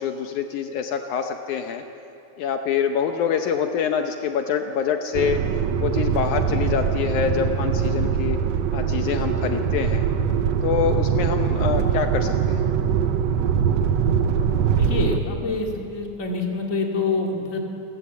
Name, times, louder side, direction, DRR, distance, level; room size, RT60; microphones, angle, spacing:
voice 1, 0.0-1.8 2.4-5.4 5.8-8.4 8.7-10.0 10.6-12.6, left 7 dB, 75° left, 5 dB, 2.2 m, -25 dB
sound 1, 5.1-15.2, right 7 dB, 70° right, 1.8 m, -22 dB
voice 2, 14.7-17.6, left 3 dB, 25° left, 0 dB, 2.5 m, -26 dB
29.0 x 14.5 x 8.4 m, 2.9 s
omnidirectional pair, 3.7 m